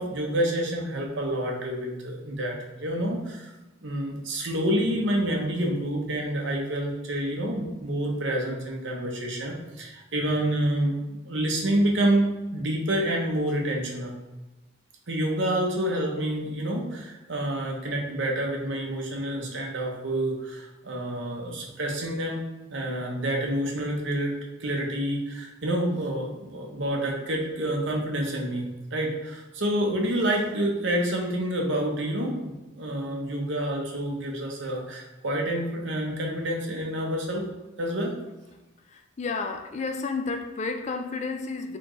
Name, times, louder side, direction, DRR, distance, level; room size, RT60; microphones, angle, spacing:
voice 1, 0.0-3.5 3.8-14.1 15.1-22.4 22.7-24.3 24.6-37.4 37.8-38.1, right 1 dB, 60° right, 0 dB, 0.9 m, -28 dB
voice 2, 38.9-41.8, left 4 dB, 35° left, 6 dB, 0.3 m, -31 dB
4.3 x 3.7 x 3.1 m, 1.1 s
head